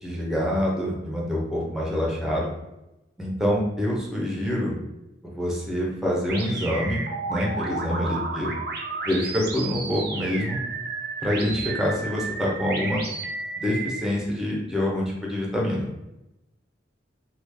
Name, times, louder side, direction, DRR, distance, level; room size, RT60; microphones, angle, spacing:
voice 1, 0.0-2.5 3.2-4.8 5.2-7.0 7.3-8.5 9.0-10.6 11.2-13.0 13.6-15.9, equal, ahead, -4 dB, 0.7 m, -26 dB
sound 1, 6.3-14.0, right 3 dB, 55° right, 0.5 m, -32 dB
3.1 x 2.4 x 3.4 m, 0.92 s
head